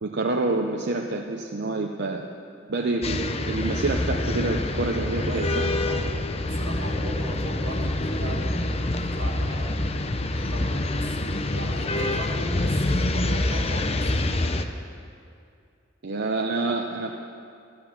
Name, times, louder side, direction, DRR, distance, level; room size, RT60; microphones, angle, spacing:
voice 1, 0.0-2.3 2.7-5.7 16.0-17.1, right 2 dB, 60° right, 2 dB, 0.8 m, -27 dB
sound 1, 3.0-14.6, left 1 dB, 35° left, 0.7 m, -26 dB
voice 2, 5.1-9.7 10.3-14.1, right 1 dB, 85° right, -1 dB, 2.4 m, -39 dB
13.5 x 10.5 x 7.4 m, 2.4 s
head